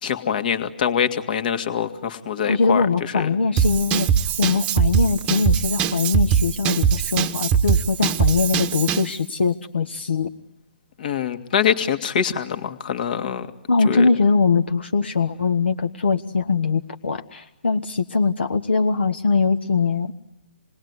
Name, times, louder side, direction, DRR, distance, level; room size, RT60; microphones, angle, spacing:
voice 1, 0.0-3.3 11.0-13.5 13.8-14.1, left 8 dB, 50° left, 8 dB, 2.0 m, -24 dB
voice 2, 2.4-4.1 4.4-10.3 13.7-20.1, left 4 dB, 75° left, 5 dB, 1.3 m, -21 dB
Drum kit / Drum, 3.6-9.1, right 8 dB, 20° right, 1.0 m, -21 dB
27.5 x 20.0 x 9.6 m, 0.92 s
figure-of-eight pair, 135°, 6 cm